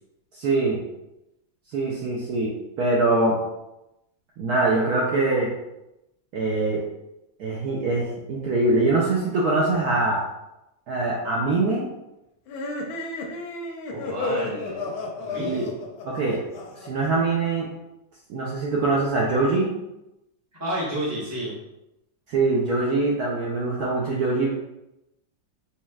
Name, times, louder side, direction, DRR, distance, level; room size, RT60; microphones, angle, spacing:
voice 1, 0.3-0.8 1.7-3.4 4.4-5.5 6.3-6.8 7.4-10.2 10.9-11.9 15.4-15.7 16.1-16.4 16.8-17.7 18.3-19.7 22.3-24.5, right 2 dB, 70° right, -4 dB, 0.9 m, -23 dB
sound 1, 12.5-17.1, left 2 dB, 85° left, 1.4 m, -32 dB
voice 2, 13.9-14.9 15.2-15.7 20.6-21.5, right 1 dB, 15° right, -7 dB, 0.6 m, -31 dB
4.3 x 3.0 x 2.3 m, 0.91 s
omnidirectional pair, 2.1 m